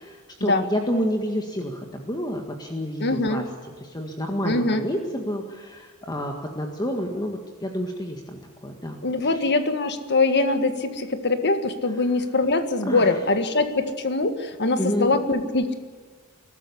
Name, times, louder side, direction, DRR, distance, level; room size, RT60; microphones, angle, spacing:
voice 1, 0.0-3.5 3.8-9.4 12.8-13.2 14.8-15.2, equal, 20° left, 3 dB, 1.8 m, -29 dB
voice 2, 3.0-3.4 4.4-4.8 9.0-15.7, left 3 dB, 50° left, 8 dB, 1.7 m, -23 dB
22.5 x 13.0 x 9.9 m, 1.5 s
head